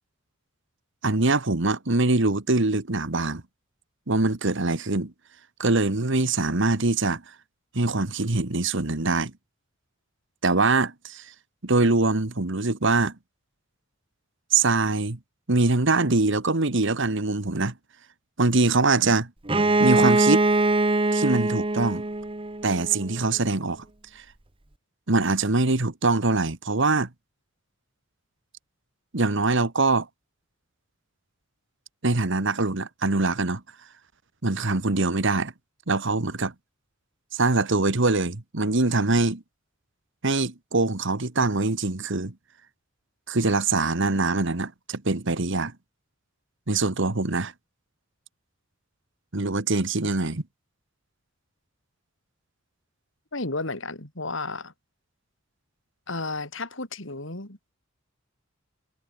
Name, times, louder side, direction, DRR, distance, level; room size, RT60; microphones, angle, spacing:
voice 1, 1.0-3.4 4.1-5.1 5.6-7.2 7.7-9.3 10.4-11.3 11.6-13.2 14.5-15.2 15.5-17.7 18.4-19.3 19.8-20.5 21.1-22.1 22.6-23.8 25.1-27.1 29.1-30.1 32.0-33.6 34.4-35.5 35.9-36.5 37.3-39.4 40.2-42.3 43.3-45.7 46.7-47.5 49.3-50.4, right 3 dB, 65° right, 1.6 m, -23 dB
Bowed string instrument, 19.5-23.1, right 2 dB, 25° right, 1.2 m, -22 dB
voice 2, 53.3-54.7 56.1-57.7, left 3 dB, 70° left, 4.3 m, -33 dB
head